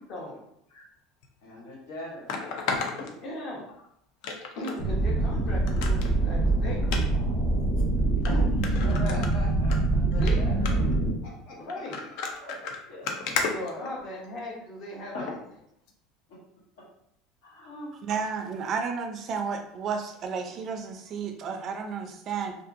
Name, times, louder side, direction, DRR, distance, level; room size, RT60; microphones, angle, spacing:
voice 1, 0.1-0.4 3.2-3.7 4.6-6.9 8.2-8.6 10.2-10.5 11.6-12.0 13.5-15.4, left 1 dB, 50° left, -2 dB, 0.9 m, -37 dB
sound 1, 1.2-1.3 2.3-3.7 4.2-4.8 5.2-5.3 5.7-6.1 6.8-7.0 7.8-7.9 8.3-8.4 8.6-9.8 10.1-10.3 10.7-11.0 11.7-14.4 15.2-15.4 15.9-16.0, left 4 dB, 70° left, 0.4 m, -33 dB
voice 2, 1.4-2.3 2.7-3.1 8.8-10.8 11.2-11.6 12.3-13.1 13.8-13.9 15.1-15.3 17.4-17.9, left 1 dB, 85° left, -4 dB, 1.1 m, -41 dB
sound 2, 4.8-11.1, right 2 dB, 25° left, 1.0 m, -24 dB
voice 3, 18.0-22.5, right 6 dB, 40° right, 4 dB, 0.4 m, -32 dB
2.6 x 2.5 x 2.5 m, 0.74 s
supercardioid pair, 130°, 0 cm